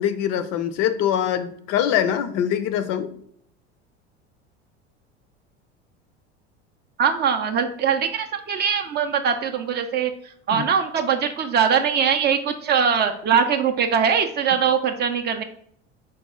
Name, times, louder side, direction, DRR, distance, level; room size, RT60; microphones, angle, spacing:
voice 1, 0.0-3.1 10.5-10.6, left 10 dB, 50° left, 10 dB, 0.5 m, -23 dB
voice 2, 7.0-10.1 10.5-15.4, right 7 dB, 30° right, 6 dB, 0.4 m, -21 dB
4.1 x 2.3 x 3.5 m, 0.64 s
hypercardioid pair, 80°, 33 cm